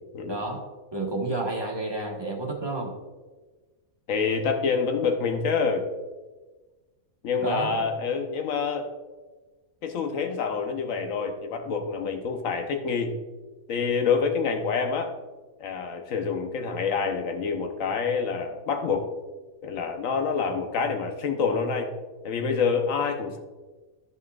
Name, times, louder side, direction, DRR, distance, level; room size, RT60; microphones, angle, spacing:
voice 1, 0.3-0.6 0.9-2.9 7.4-7.8, right 2 dB, 20° right, -2 dB, 1.2 m, -30 dB
voice 2, 4.1-5.8 7.2-8.9 9.8-13.1 13.7-15.1 15.6-19.1 19.6-21.9 22.2-23.4, left 5 dB, 65° left, 4 dB, 1.2 m, -27 dB
13.0 x 5.5 x 2.4 m, 1.2 s
omnidirectional pair, 1.5 m